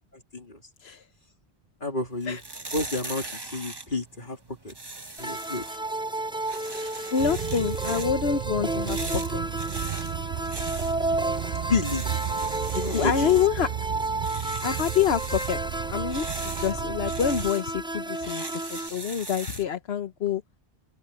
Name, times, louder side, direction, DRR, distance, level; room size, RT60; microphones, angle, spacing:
voice 1, 0.1-0.6 1.8-2.4 2.7-3.3 3.5-4.4 4.6-4.7 5.2-5.6 11.7-12.0 12.7-13.4, left 3 dB, 55° left, 3.3 m, -30 dB
sound 1, 2.1-19.7, right 2 dB, 25° right, 1.2 m, -40 dB
sound 2, 5.2-18.9, right 1 dB, 5° right, 0.5 m, -32 dB
voice 2, 7.1-9.4 12.9-13.7 14.6-15.6 15.9-18.4 18.7-20.4, left 8 dB, 80° left, 1.2 m, -26 dB
sound 3, 7.2-17.5, right 11 dB, 60° right, 0.7 m, -34 dB
open air
omnidirectional pair, 1.0 m